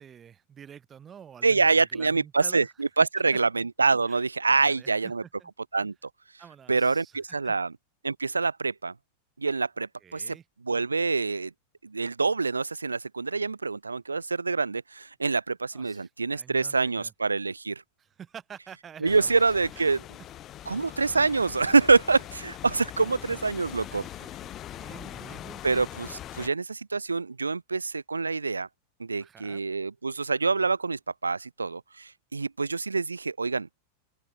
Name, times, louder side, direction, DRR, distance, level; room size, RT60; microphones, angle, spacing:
voice 1, 0.0-2.7 4.1-4.2 4.5-5.5 6.4-7.5 10.0-10.4 15.7-17.1 18.0-19.4 19.7-19.9 21.0-21.2 23.0-25.6 29.2-29.6, right 8 dB, 25° right, 5.1 m, -49 dB
voice 2, 1.4-5.2 5.7-5.9 6.7-7.7 8.0-8.9 9.4-10.4 10.6-11.5 11.8-17.8 19.0-20.0 20.7-24.0 25.6-28.7 29.0-33.7, right 4 dB, 80° right, 0.5 m, -26 dB
sound 1, 19.0-26.5, left 12 dB, 30° left, 0.5 m, -42 dB
open air
figure-of-eight pair, 90°, 0 cm